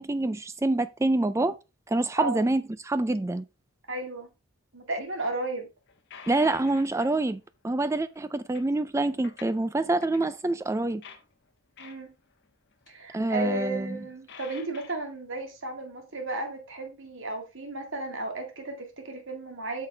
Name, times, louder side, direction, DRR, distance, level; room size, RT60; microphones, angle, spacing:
voice 1, 0.0-1.6 1.9-3.4 6.3-11.0 13.1-14.0, right 2 dB, 15° right, 0.3 m, -26 dB
voice 2, 3.9-4.3 4.7-5.7 11.8-12.1 12.9-19.9, right 2 dB, 55° right, 2.0 m, -34 dB
sound 1, 5.9-7.3 8.1-8.7 9.0-9.7 10.0-10.4 10.7-11.3 11.8-12.5 12.7-13.1 13.4-13.6 14.3-14.9, left 6 dB, 50° left, 1.2 m, -48 dB
8.3 x 6.5 x 3.3 m
head